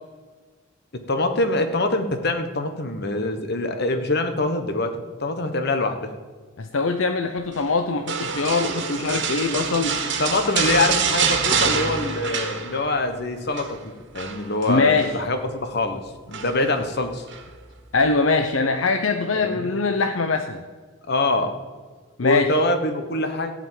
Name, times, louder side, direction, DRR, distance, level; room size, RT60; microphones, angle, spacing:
voice 1, 0.9-4.9 5.2-6.1 10.2-16.0 16.3-17.2 19.4-19.7 21.1-21.5 22.2-23.5, left 2 dB, 55° left, 7 dB, 1.2 m, -24 dB
voice 2, 6.6-10.0 14.7-15.1 17.9-20.6 22.2-22.5, left 4 dB, 75° left, 6 dB, 0.7 m, -22 dB
sound 1, 8.1-13.1 13.3-13.7 14.1-15.2 16.3-16.8 17.3-17.4, right 6 dB, 60° right, 1.6 m, -26 dB
14.5 x 5.1 x 9.3 m, 1.5 s
head